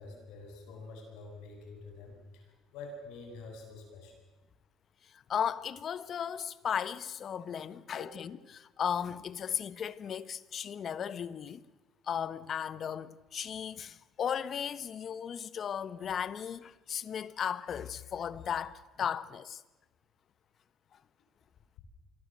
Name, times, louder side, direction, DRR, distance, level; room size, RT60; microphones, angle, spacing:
voice 1, 0.0-4.1 7.9-8.2, left 3 dB, 80° left, 7.6 m, -47 dB
voice 2, 5.0-11.6 12.0-19.6, left 8 dB, 50° left, 1.2 m, -36 dB
27.0 x 22.5 x 7.6 m
supercardioid pair, 80°, 0 cm